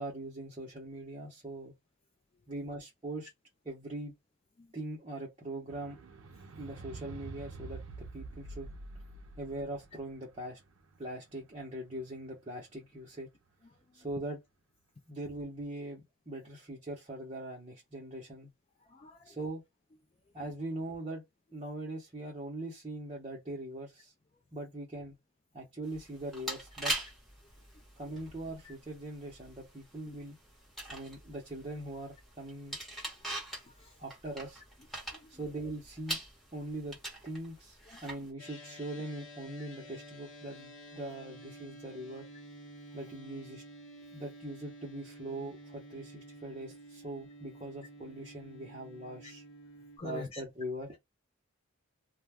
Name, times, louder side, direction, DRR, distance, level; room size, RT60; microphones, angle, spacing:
voice 1, 0.0-1.7 2.5-3.3 3.6-4.1 4.7-6.0 6.6-8.7 9.4-10.6 11.0-13.3 13.9-14.4 15.1-18.5 19.2-19.6 20.3-21.2 21.5-24.1 24.5-25.2 25.5-26.9 28.0-30.4 30.9-32.8 34.0-34.6 35.3-36.2 36.5-37.0 37.2-42.3 42.9-43.6 44.1-49.4 50.0-51.0, right 1 dB, 25° right, 0.8 m, -41 dB
sound 1, 5.7-12.2 13.0-13.1, right 3 dB, 75° right, 0.5 m, -47 dB
voice 2, 18.9-19.4 28.6-28.7 30.1-30.2 33.8-33.9 35.1-35.3 37.9-38.0 50.0-50.4, left 3 dB, 25° left, 0.3 m, -46 dB
sound 2, 25.9-38.3, right 1 dB, ahead, 1.0 m, -43 dB
sound 3, 38.4-50.0, right 1 dB, 70° left, 0.8 m, -51 dB
2.2 x 2.2 x 3.4 m
head